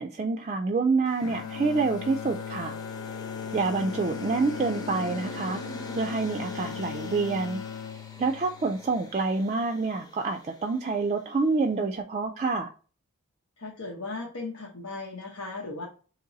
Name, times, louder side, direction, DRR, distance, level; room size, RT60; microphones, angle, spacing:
voice 1, 0.0-2.8 3.5-5.6 6.0-7.6 8.2-12.7, right 4 dB, 30° right, 5 dB, 0.3 m, -27 dB
sound 1, 1.1-11.4, left 1 dB, 15° left, 0.6 m, -45 dB
Bowed string instrument, 1.2-9.4, left 7 dB, 75° left, 0.3 m, -38 dB
voice 2, 13.6-15.9, left 3 dB, 90° left, -3 dB, 1.0 m, -37 dB
4.0 x 3.0 x 3.8 m, 0.38 s
head